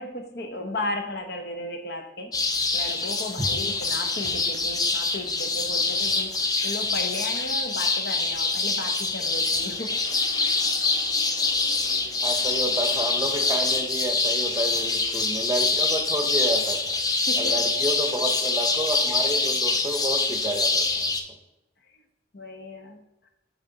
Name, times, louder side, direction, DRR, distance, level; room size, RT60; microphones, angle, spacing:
voice 1, 0.0-2.3 2.7-6.4 6.6-9.9 17.3-17.6 22.3-23.0, left 1 dB, 55° left, 4 dB, 1.0 m, -34 dB
sound 1, 2.3-21.2, left 3 dB, 20° left, 0.5 m, -25 dB
sound 2, 9.3-14.0, equal, 85° left, 1.9 m, -46 dB
voice 2, 12.2-17.0 17.3-21.1, right 1 dB, 15° right, 5 dB, 0.8 m, -30 dB
8.1 x 4.4 x 4.0 m, 0.92 s
head